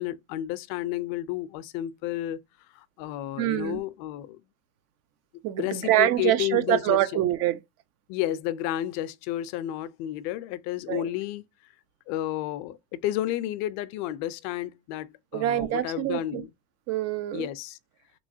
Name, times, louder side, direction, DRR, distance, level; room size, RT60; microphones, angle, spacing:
voice 1, 0.0-2.4 2.7-4.4 5.6-7.0 8.1-11.4 12.1-16.5 17.3-17.8, left 13 dB, 60° left, 0.5 m, -31 dB
voice 2, 3.4-3.8 5.4-7.6 10.9-11.1 15.3-16.4 16.9-17.5, right 14 dB, 55° right, 0.6 m, -25 dB
3.5 x 3.0 x 2.6 m
supercardioid pair, 115°, 31 cm